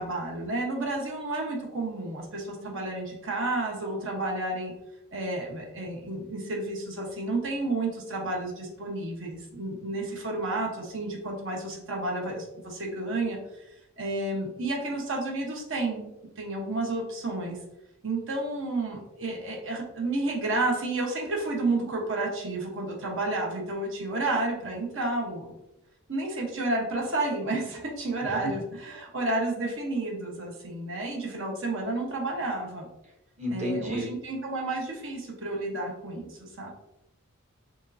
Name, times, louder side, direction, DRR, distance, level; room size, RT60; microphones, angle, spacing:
voice 1, 0.0-4.7 5.1-13.4 14.0-16.1 16.4-17.6 18.0-25.5 26.1-32.9 33.5-36.7, right 2 dB, 60° right, 0 dB, 1.1 m, -31 dB
voice 2, 33.4-34.1, equal, 30° right, -1 dB, 1.0 m, -31 dB
5.1 x 3.2 x 2.7 m, 0.89 s
head